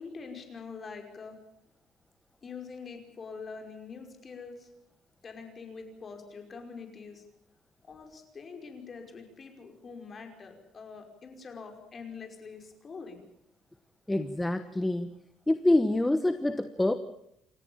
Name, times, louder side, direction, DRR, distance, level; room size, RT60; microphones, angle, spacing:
voice 1, 0.0-1.4 2.4-4.7 5.2-7.2 7.8-13.2, left 5 dB, 30° left, 4 dB, 5.3 m, -44 dB
voice 2, 14.1-15.2 15.5-17.0, left 1 dB, 10° left, 9 dB, 1.1 m, -26 dB
29.0 x 14.5 x 8.9 m, 0.78 s
cardioid pair, 140°, 0 cm